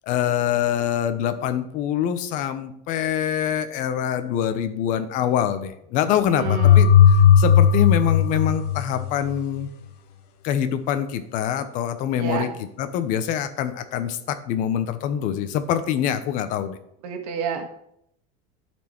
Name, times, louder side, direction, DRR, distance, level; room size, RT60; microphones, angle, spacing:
voice 1, 0.1-6.9 7.4-9.7 10.4-12.5 12.8-16.8, left 9 dB, 40° left, 10 dB, 0.7 m, -25 dB
voice 2, 6.3-6.9 12.2-12.4 17.0-17.7, right 7 dB, 80° right, 4 dB, 1.5 m, -29 dB
sound 1, 6.5-9.3, left 8 dB, 85° left, 1.0 m, -15 dB
11.5 x 4.5 x 4.4 m, 0.75 s
cardioid pair, 170°, 20 cm